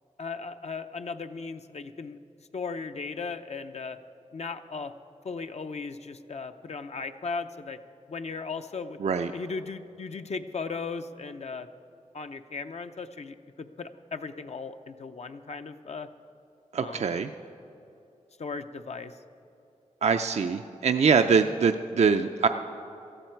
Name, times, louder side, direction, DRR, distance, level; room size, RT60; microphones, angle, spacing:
voice 1, 0.2-2.2 2.5-4.0 4.3-4.9 5.2-7.8 8.1-9.0 9.3-11.7 12.1-16.1 16.8-17.1 18.4-19.2, left 4 dB, 60° left, 8 dB, 0.7 m, -37 dB
voice 2, 16.7-17.3 20.0-22.5, right 5 dB, 60° right, 7 dB, 0.5 m, -23 dB
18.0 x 13.5 x 4.5 m, 2.7 s
wide cardioid pair, 80°, 13 cm